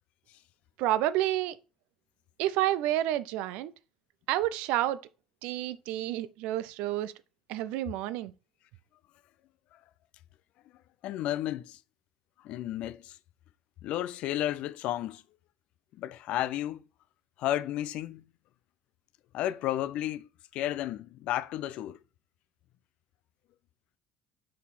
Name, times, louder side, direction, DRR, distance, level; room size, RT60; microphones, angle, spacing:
voice 1, 0.8-1.6 2.4-3.7 4.3-5.0 5.4-7.1 7.5-8.3, right 14 dB, 70° right, 0.4 m, -29 dB
voice 2, 11.0-11.8 12.4-13.2 13.8-15.2 15.9-16.9 17.4-18.2 19.3-22.0, left 13 dB, 60° left, 0.4 m, -32 dB
6.5 x 4.1 x 3.7 m
hypercardioid pair, 65°, 2 cm